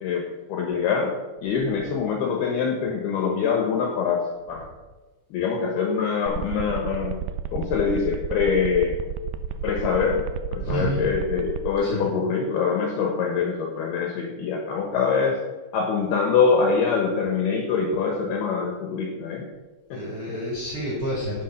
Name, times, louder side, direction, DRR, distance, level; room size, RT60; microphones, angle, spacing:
voice 1, 0.0-1.1 1.4-4.7 5.3-7.2 7.5-8.9 9.6-10.2 10.5-15.4 15.7-19.5 19.9-20.0, left 5 dB, 70° left, 1 dB, 2.9 m, -24 dB
sound 1, 6.3-11.7, right 8 dB, 85° right, 2.2 m, -31 dB
voice 2, 10.6-11.0 11.8-12.1 19.9-21.4, equal, 25° right, -7 dB, 3.7 m, -29 dB
10.5 x 7.7 x 6.5 m, 1.2 s
omnidirectional pair, 5.2 m